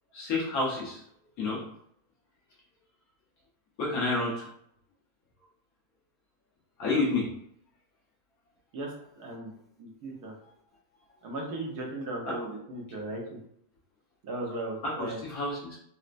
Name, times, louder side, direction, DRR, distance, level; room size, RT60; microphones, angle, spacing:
voice 1, 0.1-1.0 1.4-1.6 3.8-4.3 6.8-7.3 15.3-15.8, left 3 dB, 70° left, -5 dB, 1.5 m, -28 dB
voice 2, 9.2-9.5 9.8-10.3 11.2-13.2 14.2-15.2, right 2 dB, 80° right, -1 dB, 1.4 m, -36 dB
4.2 x 2.1 x 2.5 m, 0.71 s
omnidirectional pair, 1.6 m